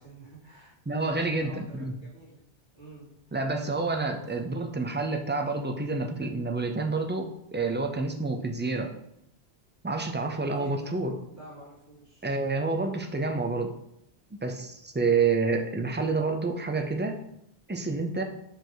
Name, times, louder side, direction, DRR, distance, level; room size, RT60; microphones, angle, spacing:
voice 1, 0.0-2.4 2.7-3.1 10.4-11.0 11.3-12.3, right 1 dB, 50° right, -8 dB, 2.6 m, -48 dB
voice 2, 0.9-1.9 3.3-8.9 9.8-11.2 12.2-13.8 14.3-17.2 17.7-18.2, right 3 dB, 15° right, 4 dB, 0.3 m, -28 dB
5.0 x 5.0 x 3.9 m, 0.76 s
omnidirectional pair, 1.1 m